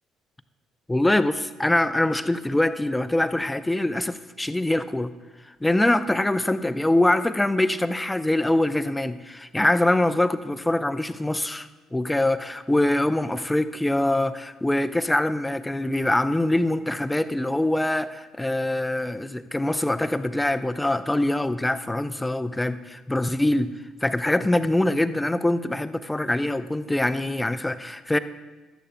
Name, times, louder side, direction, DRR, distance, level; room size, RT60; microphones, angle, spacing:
voice 1, 0.9-5.1 5.6-23.7 24.0-28.2, left 1 dB, 10° left, 12 dB, 0.5 m, -24 dB
16.0 x 12.5 x 2.2 m, 1.2 s
figure-of-eight pair, 50°, 0 cm